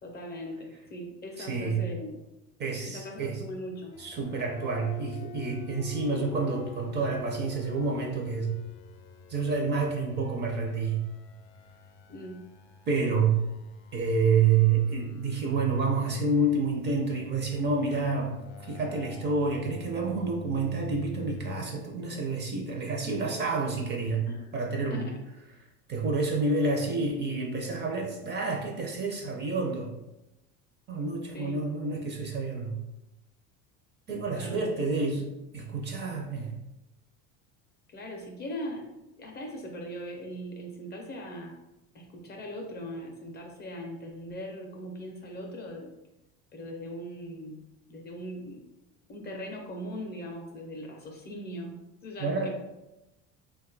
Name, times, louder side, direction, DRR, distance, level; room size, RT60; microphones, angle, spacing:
voice 1, 0.0-2.2 2.9-3.9 12.1-12.4 24.3-24.5 24.9-25.2 31.3-31.6 34.3-34.6 37.9-38.9 39.2-41.5 41.9-45.9 46.5-47.6 47.9-48.6 49.1-52.5, equal, 30° left, 1 dB, 0.5 m, -40 dB
voice 2, 1.4-1.8 2.6-3.4 4.0-8.5 9.3-11.0 12.9-13.4 13.9-18.4 18.6-24.3 24.5-25.1 25.9-29.9 30.9-32.8 34.1-35.3 35.5-36.6 52.2-52.5, right 4 dB, 30° right, 0 dB, 0.5 m, -28 dB
sound 1, 3.9-21.5, left 3 dB, 80° left, 0.5 m, -46 dB
2.5 x 2.3 x 3.8 m, 0.96 s
cardioid pair, 135°, 36 cm